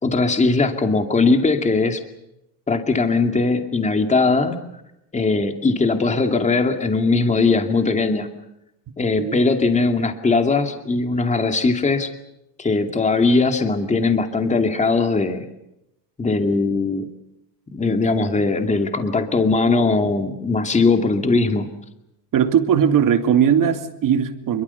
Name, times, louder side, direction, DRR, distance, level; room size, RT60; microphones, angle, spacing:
voice 1, 0.0-2.0 2.7-4.6 5.1-8.3 9.0-12.1 12.6-15.4 16.2-17.1 17.7-21.7, left 3 dB, 15° left, 6 dB, 2.4 m, -20 dB
voice 2, 22.3-24.6, right 8 dB, 45° right, 8 dB, 2.6 m, -18 dB
28.0 x 23.0 x 7.0 m, 0.85 s
cardioid pair, 155°, 45 cm